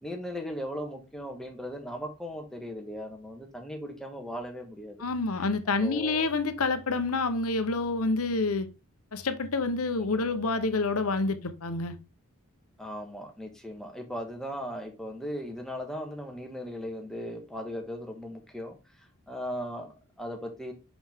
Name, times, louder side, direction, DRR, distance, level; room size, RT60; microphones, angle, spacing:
voice 1, 0.0-5.0 5.8-6.3 10.0-10.4 12.8-20.7, equal, ahead, 1.3 m, -38 dB
voice 2, 5.0-8.7 9.1-12.0, left 3 dB, 80° left, 0.8 m, -28 dB
6.0 x 5.5 x 3.5 m
head